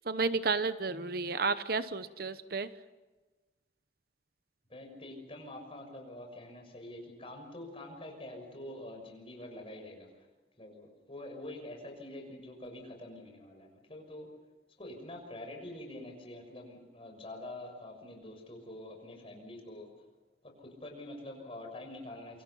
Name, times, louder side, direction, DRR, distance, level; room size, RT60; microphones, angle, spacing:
voice 1, 0.1-2.7, right 4 dB, 60° right, 12 dB, 1.0 m, -32 dB
voice 2, 4.7-10.3 10.6-14.3 14.8-19.9 20.4-22.4, left 1 dB, 35° left, 3 dB, 6.2 m, -46 dB
27.5 x 25.0 x 5.7 m, 1.2 s
head